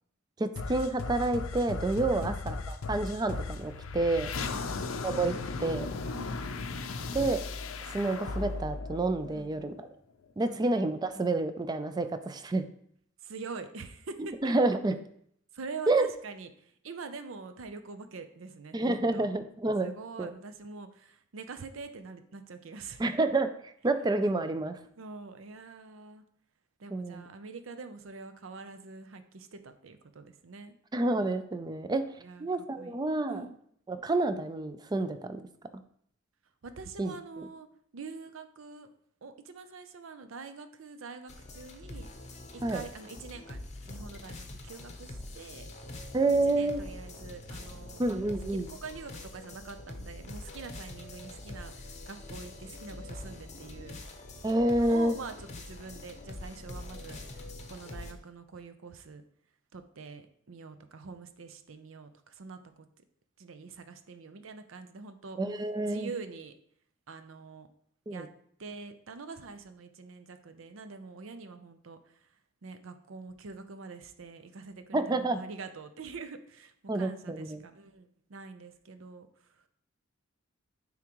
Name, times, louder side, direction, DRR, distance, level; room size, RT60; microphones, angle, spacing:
voice 1, 0.4-4.3 5.0-5.3 5.6-5.9 7.1-7.4 7.9-9.7 10.4-12.6 14.4-15.0 15.9-16.1 18.7-19.9 20.2-20.3 23.0-23.5 23.8-24.8 26.9-27.3 30.9-32.1 32.4-33.4 33.9-35.4 37.0-37.5 42.6-42.8 46.1-46.8 48.0-48.7 54.4-55.1 65.4-66.1 68.1-68.3 74.9-75.4 76.9-77.6, right 2 dB, 20° right, 9 dB, 0.4 m, -29 dB
sound 1, 0.5-9.9, left 3 dB, 80° left, 0.5 m, -36 dB
voice 2, 4.4-4.7 6.1-6.4 9.3-9.5 10.4-10.7 13.2-14.5 15.5-18.8 19.1-19.3 19.8-23.1 24.9-26.2 26.8-30.8 32.2-32.5 32.8-33.0 33.3-33.6 36.6-37.7 37.9-38.9 39.2-42.1 42.5-43.6 43.9-45.7 46.4-48.0 48.5-54.0 54.8-59.2 59.7-62.9 63.4-65.4 65.9-66.5 67.1-67.7 68.1-68.3 68.6-72.3 72.6-79.3, right 4 dB, 75° right, 9 dB, 0.6 m, -45 dB
sound 2, 41.3-58.1, left 2 dB, 35° left, 0.7 m, -44 dB
9.6 x 3.6 x 3.0 m, 0.67 s
head